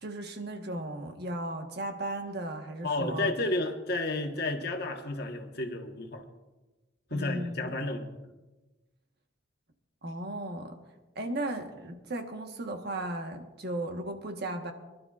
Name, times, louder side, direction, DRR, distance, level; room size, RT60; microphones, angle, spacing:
voice 1, 0.0-3.3 7.1-7.7 10.0-10.8 11.1-14.7, right 1 dB, 60° right, 5 dB, 1.3 m, -36 dB
voice 2, 2.8-6.2 7.1-8.2, left 2 dB, 60° left, 3 dB, 1.3 m, -32 dB
25.0 x 12.0 x 2.5 m, 1.1 s
head